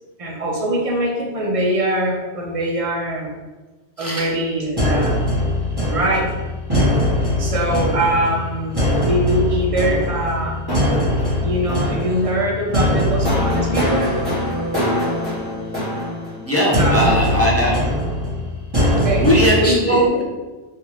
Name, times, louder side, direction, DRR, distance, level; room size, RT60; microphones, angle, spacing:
voice 1, 0.2-3.4 4.0-5.2 5.8-6.3 7.4-10.6 11.4-14.1 16.7-17.7 18.9-19.3 19.6-20.2, right 1 dB, 45° right, -2 dB, 0.5 m, -22 dB
sound 1, 4.8-19.5, left 1 dB, 20° right, 1.2 m, -21 dB
voice 2, 16.4-17.8 19.2-20.2, equal, 20° left, -5 dB, 0.4 m, -19 dB
3.4 x 2.4 x 3.0 m, 1.2 s
omnidirectional pair, 1.1 m